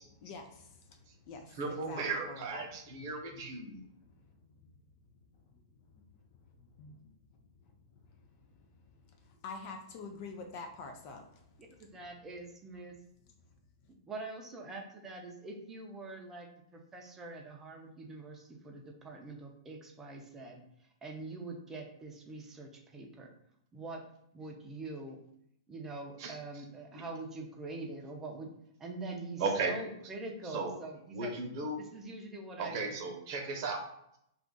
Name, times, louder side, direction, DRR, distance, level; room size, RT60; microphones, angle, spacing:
voice 1, 0.1-2.7 3.7-4.8 5.1-6.1 6.4-7.1 7.7-12.3, left 4 dB, 45° left, 4 dB, 0.4 m, -49 dB
voice 2, 1.6-3.8 26.2-26.4 26.9-27.0 29.4-29.7 30.4-30.8 31.1-31.8 32.6-33.8, right 4 dB, 50° right, 2 dB, 0.8 m, -35 dB
voice 3, 11.8-12.9 14.1-20.6 21.0-23.3 23.7-24.0 24.3-25.2 25.7-28.5 28.8-31.3 31.9-33.0, right 2 dB, 15° right, 2 dB, 0.6 m, -44 dB
2.4 x 2.4 x 3.8 m, 0.75 s
hypercardioid pair, 125°, 2 cm